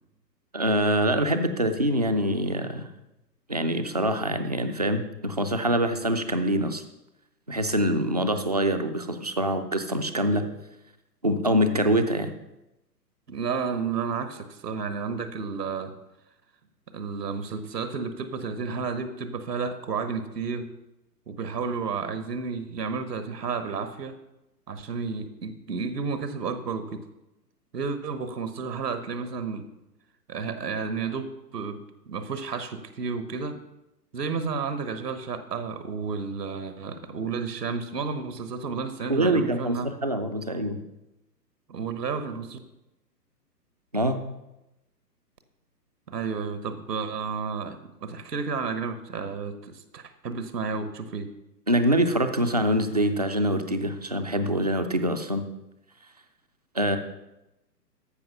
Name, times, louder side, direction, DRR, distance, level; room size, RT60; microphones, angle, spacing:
voice 1, 0.5-2.9 3.5-6.8 7.5-10.4 11.2-12.3 39.1-40.8 43.9-44.2 51.7-55.5 56.7-57.0, right 1 dB, 30° right, 8 dB, 0.3 m, -25 dB
voice 2, 13.3-15.9 16.9-20.7 21.3-24.1 24.7-27.0 27.7-29.7 30.3-31.8 32.1-33.6 34.1-39.9 41.7-42.6 46.1-51.3, right 5 dB, 70° right, 10 dB, 1.3 m, -31 dB
13.5 x 5.5 x 5.5 m, 0.95 s
figure-of-eight pair, 125°, 50 cm